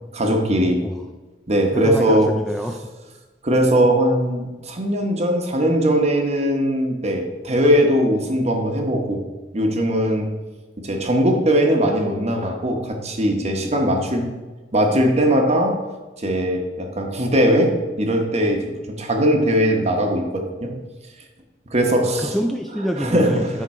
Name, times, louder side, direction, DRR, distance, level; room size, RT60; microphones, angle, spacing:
voice 1, 0.1-0.8 1.5-2.3 3.4-9.2 9.5-10.3 10.8-14.3 14.7-15.8 16.2-20.8 21.7-22.3 23.0-23.5, equal, 40° right, 3 dB, 1.0 m, -20 dB
voice 2, 1.7-2.8 22.0-23.6, equal, ahead, 3 dB, 0.3 m, -27 dB
9.8 x 3.7 x 4.2 m, 1.2 s
head